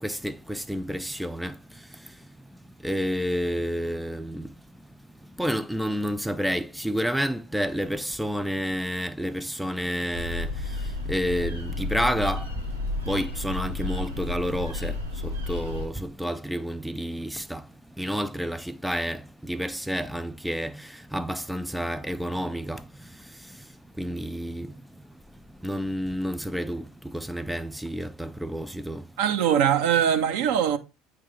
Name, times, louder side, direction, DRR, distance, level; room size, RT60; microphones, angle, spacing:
voice 1, 0.0-1.6 2.8-4.5 5.4-10.7 11.1-12.5 13.1-17.7 18.0-22.9 24.0-24.7 25.6-29.0, equal, ahead, 0.4 m, -30 dB
sound 1, 10.1-15.9, left 2 dB, 90° right, 1.0 m, -32 dB
voice 2, 29.2-30.8, right 9 dB, 60° right, 0.7 m, -22 dB
8.9 x 3.2 x 3.8 m
figure-of-eight pair, 65°, 0 cm